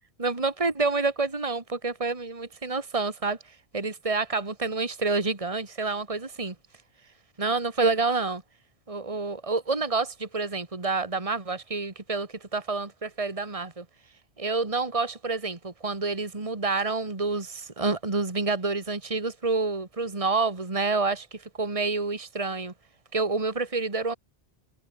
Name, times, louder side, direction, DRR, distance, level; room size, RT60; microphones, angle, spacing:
voice 1, 0.2-3.4 3.7-6.6 7.4-8.4 8.9-13.9 14.4-22.7 23.1-24.1, right 3 dB, 30° right, 2.2 m, -28 dB
omnidirectional pair, 1.1 m